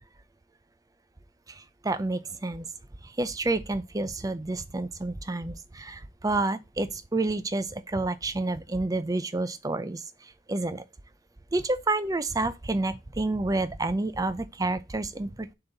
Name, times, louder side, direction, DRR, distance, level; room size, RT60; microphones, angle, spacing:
voice 1, 1.5-2.6 3.0-10.0 10.5-10.8 11.5-15.5, right 2 dB, 15° right, 0.5 m, -29 dB
6.9 x 3.9 x 3.9 m
head